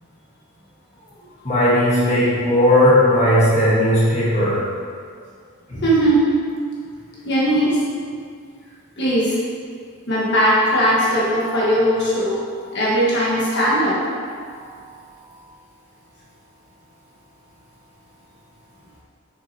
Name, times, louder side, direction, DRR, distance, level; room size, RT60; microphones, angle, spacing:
voice 1, 1.4-4.6 5.7-5.8, left 1 dB, 30° left, -9 dB, 1.4 m, -16 dB
voice 2, 5.8-6.3 7.2-7.8 9.0-9.4 10.1-12.4 12.7-14.0, equal, 50° left, -7 dB, 1.4 m, -18 dB
7.5 x 6.1 x 2.9 m, 2.1 s
head